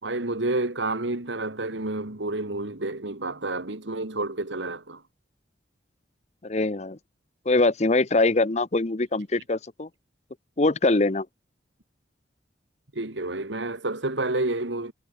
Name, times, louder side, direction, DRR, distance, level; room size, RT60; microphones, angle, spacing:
voice 1, 0.0-5.0 12.9-14.9, right 2 dB, 75° right, 2.2 m, -29 dB
voice 2, 6.4-7.0 7.5-9.9 10.6-11.3, left 2 dB, 35° left, 0.8 m, -23 dB
head